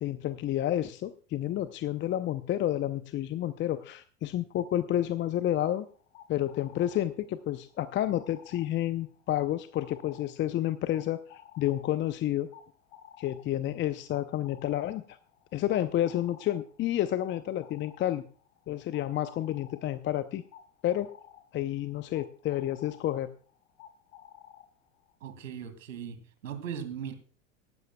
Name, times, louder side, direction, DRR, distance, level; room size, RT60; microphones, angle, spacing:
voice 1, 0.0-5.9 6.3-12.5 13.2-15.2 15.5-18.2 18.7-20.4 20.8-21.1 21.5-23.3, left 12 dB, 30° left, 0.7 m, -30 dB
sound 1, 5.7-25.1, left 10 dB, 60° left, 2.3 m, -55 dB
voice 2, 25.2-27.1, right 8 dB, 75° right, 2.4 m, -39 dB
17.5 x 12.5 x 2.3 m
hypercardioid pair, 85°, 39 cm